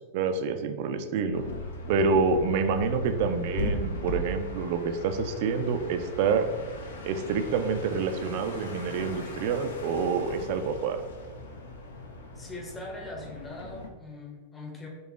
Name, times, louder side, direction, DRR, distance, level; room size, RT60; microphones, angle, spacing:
voice 1, 0.1-1.4 1.9-6.5 7.0-11.0, right 5 dB, 50° right, 8 dB, 0.3 m, -27 dB
sound 1, 1.3-13.9, left 2 dB, 65° left, 0.5 m, -38 dB
voice 2, 12.4-14.9, left 2 dB, 15° left, 0 dB, 0.8 m, -41 dB
3.8 x 2.8 x 3.7 m, 1.3 s
figure-of-eight pair, 90°, 0 cm